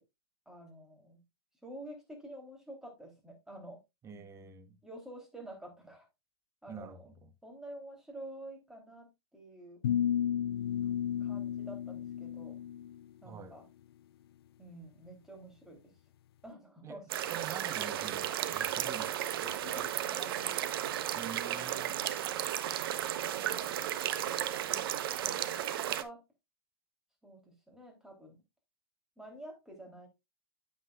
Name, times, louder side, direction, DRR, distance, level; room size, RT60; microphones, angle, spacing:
voice 1, 0.4-1.2 1.6-3.8 4.8-6.1 6.6-7.1 7.4-9.8 11.2-12.6 13.2-13.7 14.6-15.9 16.4-17.1 19.4-20.6 23.3-23.9 24.1-25.5 25.8-26.2 27.2-28.4 29.2-30.1, right 1 dB, 5° right, 3.3 m, -49 dB
voice 2, 4.0-4.8 6.7-7.3 13.2-13.6 16.8-17.0 17.3-19.9 21.1-22.1, right 6 dB, 20° right, 1.1 m, -47 dB
sound 1, 9.8-13.0, left 10 dB, 70° left, 0.4 m, -33 dB
sound 2, 17.1-26.0, right 11 dB, 65° right, 0.9 m, -34 dB
9.4 x 7.8 x 2.4 m
hypercardioid pair, 120°, 13 cm